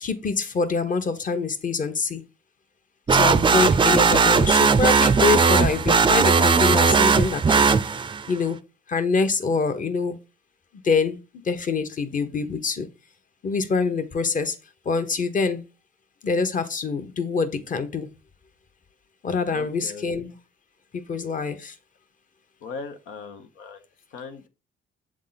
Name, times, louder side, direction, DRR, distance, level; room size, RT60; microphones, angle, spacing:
voice 1, 0.0-2.2 3.1-7.7 8.3-8.6 8.9-10.2 10.8-11.2 11.4-12.9 13.4-14.6 14.8-15.7 16.2-18.1 19.2-20.3 20.9-21.7, left 4 dB, 40° left, 1.0 m, -25 dB
sound 1, 3.1-8.3, right 5 dB, 25° right, 0.4 m, -18 dB
voice 2, 19.4-20.1 22.6-24.5, left 5 dB, 90° left, 1.1 m, -39 dB
7.6 x 3.7 x 4.0 m
cardioid pair, 90°, 20 cm